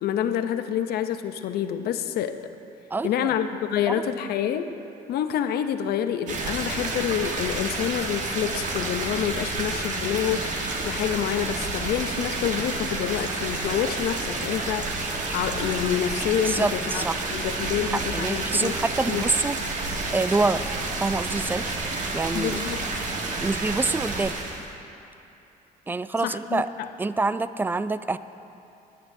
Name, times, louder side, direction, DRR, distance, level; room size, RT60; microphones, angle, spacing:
voice 1, 0.0-2.4 3.0-4.7 5.1-17.0 17.3-18.7 19.1-19.3 22.3-22.8 26.2-26.6, left 9 dB, 70° left, 9 dB, 0.7 m, -27 dB
voice 2, 2.9-3.3 3.9-4.0 16.4-17.2 17.8-19.6 20.1-20.6 21.0-21.7 22.1-22.6 23.4-24.3 25.9-26.7 27.0-28.2, right 3 dB, 10° right, 13 dB, 0.3 m, -26 dB
sound 1, 6.3-24.7, right 3 dB, 50° right, 1.4 m, -30 dB
20.0 x 9.4 x 2.7 m, 2.7 s
cardioid pair, 110°, 17 cm